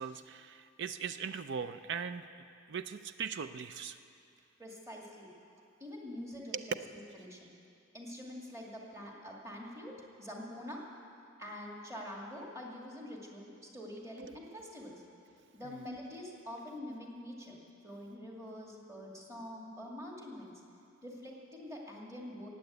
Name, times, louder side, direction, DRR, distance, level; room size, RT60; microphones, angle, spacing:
voice 1, 0.0-2.2 2.7-4.0 6.5-6.6 14.2-14.3 15.7-15.8, right 6 dB, 55° right, 11 dB, 0.4 m, -39 dB
voice 2, 4.6-5.3 5.8-6.7 7.1-7.5 7.9-10.8 11.4-15.0 15.5-17.6 17.8-20.5 21.0-22.5, left 1 dB, 15° right, -2 dB, 2.1 m, -45 dB
15.5 x 9.4 x 8.1 m, 2.5 s
head